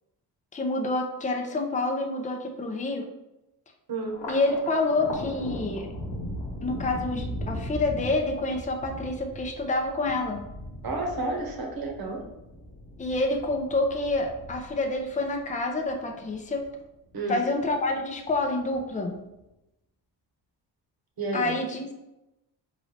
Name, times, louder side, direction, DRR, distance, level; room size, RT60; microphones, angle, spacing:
voice 1, 0.5-3.1 4.3-5.9 6.6-10.4 13.0-16.7 17.3-19.2 21.3-21.9, left 2 dB, 15° left, 3 dB, 0.6 m, -28 dB
Thunder, 4.1-16.7 17.1-17.9 18.3-19.1, left 1 dB, 75° left, 1.2 m, -38 dB
voice 2, 10.8-12.2 17.1-17.4 21.2-21.6, right 2 dB, 55° right, 1 dB, 1.1 m, -31 dB
3.8 x 2.6 x 3.2 m, 0.93 s
cardioid pair, 65°, 44 cm